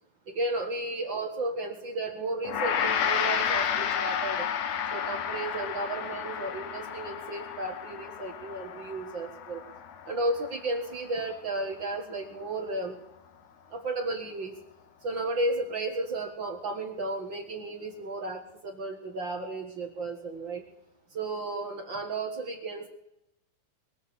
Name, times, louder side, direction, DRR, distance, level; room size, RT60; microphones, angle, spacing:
voice 1, 0.3-4.5 4.9-9.6 10.1-13.0 13.7-14.5 15.0-20.6 21.1-22.9, right 2 dB, 45° right, 2 dB, 2.1 m, -33 dB
Gong, 2.4-11.8, left 8 dB, 70° left, 2.4 m, -32 dB
22.5 x 8.2 x 7.1 m, 0.83 s
omnidirectional pair, 3.5 m